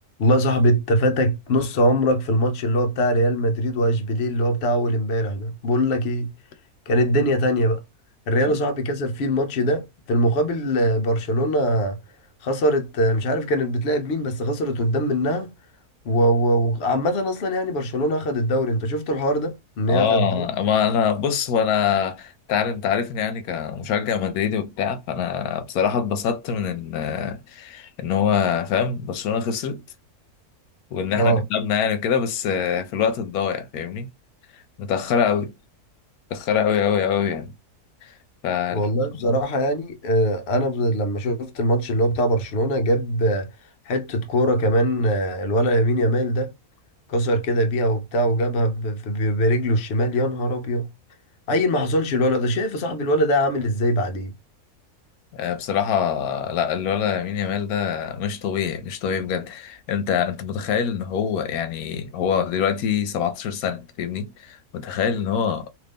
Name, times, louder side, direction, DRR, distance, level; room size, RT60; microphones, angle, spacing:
voice 1, 0.2-6.3 6.9-7.8 8.3-12.0 12.4-15.5 16.0-20.5 31.1-31.4 38.7-43.5 43.9-46.5 47.1-50.9 51.5-54.3, equal, 55° left, 0.8 m, -22 dB
voice 2, 19.9-29.8 30.9-34.1 34.5-35.5 36.3-37.5 38.0-38.1 38.4-38.9 39.2-39.4 55.3-65.7, left 7 dB, 80° left, 1.1 m, -24 dB
2.8 x 2.5 x 3.4 m
omnidirectional pair, 1.6 m